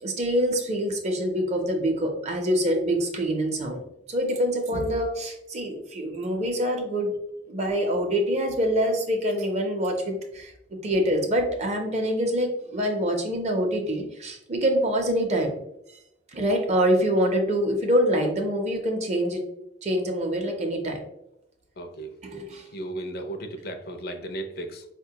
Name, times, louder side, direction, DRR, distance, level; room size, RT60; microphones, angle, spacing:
voice 1, 0.0-3.8 4.1-7.1 7.5-10.5 10.8-15.5 16.3-19.4 19.8-21.0 22.2-22.7, equal, 40° right, 3 dB, 0.5 m, -25 dB
voice 2, 21.8-22.1 22.6-24.9, right 1 dB, 60° left, 6 dB, 0.4 m, -35 dB
4.3 x 2.2 x 2.7 m, 0.82 s
head